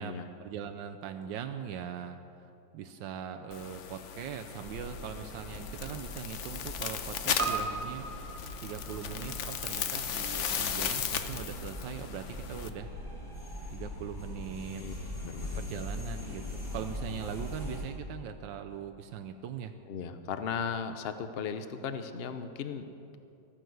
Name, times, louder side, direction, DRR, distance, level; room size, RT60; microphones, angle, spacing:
voice 1, 0.4-8.1 8.6-12.9 13.7-14.8 15.6-19.7, right 8 dB, 80° right, 6 dB, 1.4 m, -41 dB
sound 1, 3.5-12.7, left 8 dB, 55° left, 0.8 m, -36 dB
sound 2, 4.6-17.8, left 1 dB, 25° left, 2.7 m, -42 dB
Piano, 7.4-11.9 12.2-12.3, right 4 dB, 50° right, 1.5 m, -39 dB
voice 2, 15.2-15.8 19.9-22.8, left 6 dB, 85° left, 9 dB, 0.5 m, -37 dB
13.5 x 10.0 x 7.8 m, 2.7 s
omnidirectional pair, 2.0 m